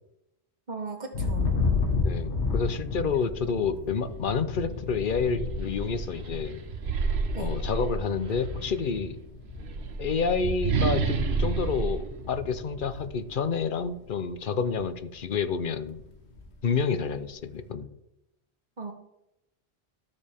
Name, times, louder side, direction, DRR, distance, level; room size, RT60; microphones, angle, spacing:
voice 1, 0.7-1.5 7.3-7.6 18.8-18.9, right 4 dB, 45° right, 3 dB, 1.5 m, -37 dB
Thunder, 1.1-14.0 14.4-14.9 15.2-16.7, left 4 dB, 85° left, 1.7 m, -33 dB
voice 2, 2.0-6.6 7.4-9.2 10.0-16.0 16.6-17.9, left 5 dB, 55° left, 11 dB, 0.8 m, -29 dB
sound 1, 4.3-4.5 4.9-8.5 9.4-13.1, right 4 dB, 75° right, 1.1 m, -30 dB
13.0 x 6.7 x 3.5 m, 0.88 s
omnidirectional pair, 1.1 m